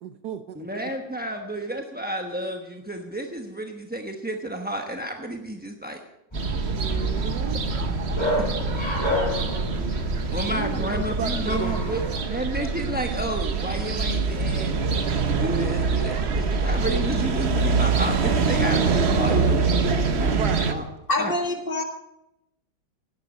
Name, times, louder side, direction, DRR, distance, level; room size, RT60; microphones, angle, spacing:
voice 1, 0.0-0.7 6.7-7.6 10.5-12.4 20.3-20.9, right 8 dB, 70° right, 10 dB, 1.1 m, -34 dB
voice 2, 0.5-6.0 8.4-8.5 10.3-14.8 15.4-20.4 20.7-20.9 21.2-21.3, right 1 dB, 10° right, 3 dB, 0.5 m, -31 dB
Bark, 6.3-12.2, left 1 dB, 15° left, 5.1 m, -30 dB
sound 1, 6.3-20.7, right 4 dB, 45° right, 1.0 m, -25 dB
voice 3, 21.1-21.8, left 2 dB, 30° left, 4 dB, 1.9 m, -25 dB
17.0 x 11.5 x 5.3 m, 0.87 s
omnidirectional pair, 2.1 m